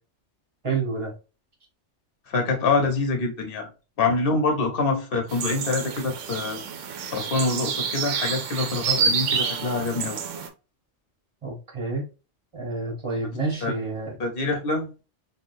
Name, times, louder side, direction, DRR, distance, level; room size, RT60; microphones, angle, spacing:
voice 1, 0.6-1.1 11.4-12.1 12.5-14.2, right 3 dB, 25° right, 1.1 m, -29 dB
voice 2, 2.3-3.7 4.0-6.6 7.1-10.2 13.6-13.7 14.2-15.0, left 3 dB, 50° left, 1.0 m, -25 dB
sound 1, 5.3-10.5, right 6 dB, 85° right, 0.9 m, -28 dB
3.5 x 2.4 x 2.5 m
omnidirectional pair, 1.3 m